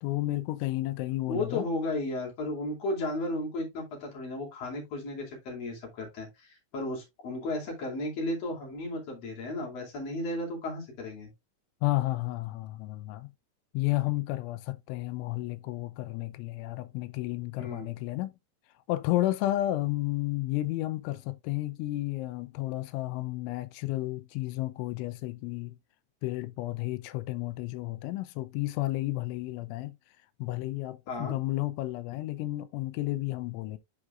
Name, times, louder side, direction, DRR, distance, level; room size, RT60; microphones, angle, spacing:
voice 1, 0.0-1.7 11.8-13.3 13.7-18.3 18.9-25.8 26.2-29.9 30.4-33.8, left 17 dB, 85° left, 3.0 m, -32 dB
voice 2, 1.3-11.3 17.6-17.9 31.1-31.4, left 2 dB, 40° left, 2.9 m, -34 dB
11.0 x 4.4 x 2.4 m
omnidirectional pair, 5.5 m